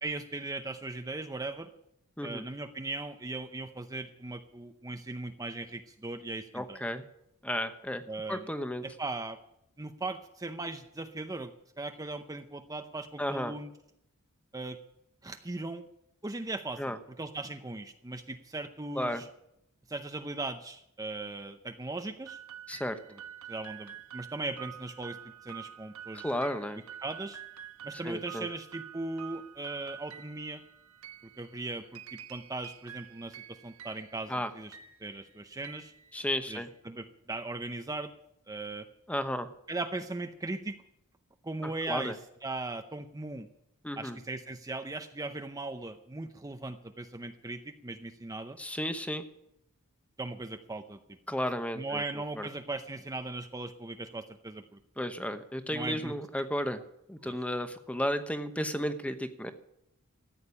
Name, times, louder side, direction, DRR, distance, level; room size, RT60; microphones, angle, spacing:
voice 1, 0.0-1.7 2.2-6.8 8.1-8.5 8.8-9.4 9.8-11.5 11.8-13.7 14.5-14.8 15.2-15.8 16.2-19.3 19.9-22.4 23.5-25.2 25.4-26.2 27.0-27.4 27.8-30.6 31.4-32.0 32.3-34.7 35.0-35.9 36.5-38.1 38.5-38.8 39.7-40.7 41.4-43.5 44.0-48.6 50.2-51.0 51.8-54.8 55.7-56.1 57.2-57.4, right 2 dB, 15° right, 6 dB, 0.7 m, -38 dB
voice 2, 6.5-7.0 7.4-8.0 8.3-8.8 13.2-13.5 16.8-17.0 18.9-19.2 22.7-23.0 26.1-26.8 28.0-28.5 34.3-34.5 36.1-36.7 39.1-39.5 41.6-42.1 43.8-44.2 48.6-49.2 51.3-52.5 55.0-56.8 57.1-59.5, equal, 5° left, 9 dB, 1.0 m, -33 dB
sound 1, 22.3-36.7, right 9 dB, 70° right, 1.3 m, -48 dB
14.0 x 8.8 x 9.9 m, 0.78 s
head